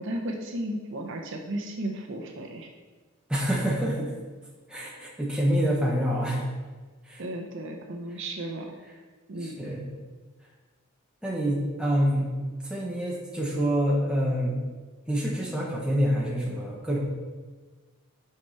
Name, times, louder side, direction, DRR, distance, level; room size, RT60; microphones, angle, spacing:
voice 1, 0.0-2.7 7.2-8.8 9.3-9.7, right 1 dB, 60° right, 2 dB, 0.7 m, -34 dB
voice 2, 3.3-4.1 4.7-6.5 7.0-7.2 9.4-9.9 11.2-12.3 12.6-14.6 15.1-17.0, equal, 5° right, -3 dB, 1.1 m, -26 dB
5.8 x 4.6 x 5.7 m, 1.4 s
head